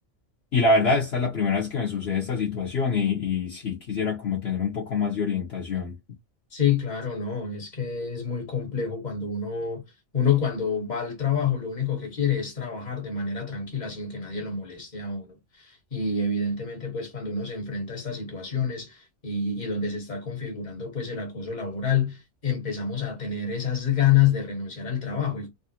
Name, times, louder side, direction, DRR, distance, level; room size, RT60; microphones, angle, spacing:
voice 1, 0.5-5.9, left 4 dB, 60° left, 1.2 m, -25 dB
voice 2, 6.5-9.8 10.1-25.5, left 7 dB, 35° left, 1.4 m, -28 dB
3.2 x 2.5 x 2.9 m
omnidirectional pair, 1.3 m